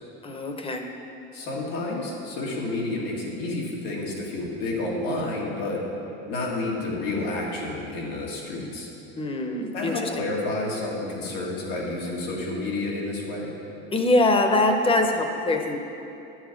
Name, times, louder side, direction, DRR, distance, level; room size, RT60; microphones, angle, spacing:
voice 1, 0.2-0.9 9.2-10.1 13.9-15.8, left 2 dB, 20° left, 5 dB, 0.9 m, -23 dB
voice 2, 1.3-5.8 6.3-8.9 9.7-13.5, left 2 dB, 90° left, -4 dB, 2.3 m, -30 dB
11.0 x 7.2 x 5.2 m, 2.9 s
supercardioid pair, 120°, 29 cm